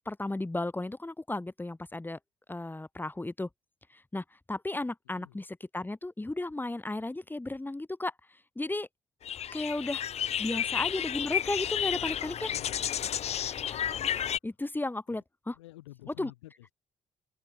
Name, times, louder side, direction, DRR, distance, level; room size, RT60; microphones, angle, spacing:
voice 1, 0.0-2.2 2.5-3.5 3.9-5.5 5.7-8.1 8.5-8.9 9.5-10.1 10.4-12.5 14.0-15.5 16.2-16.3, left 2 dB, 15° left, 1.5 m, -34 dB
voice 2, 5.0-5.4 10.5-10.6 12.5-12.8 15.1-15.2 15.5-16.7, left 17 dB, 80° left, 4.0 m, -51 dB
sound 1, 9.2-14.4, left 9 dB, 50° left, 0.6 m, -32 dB
figure-of-eight pair, 45°, 15 cm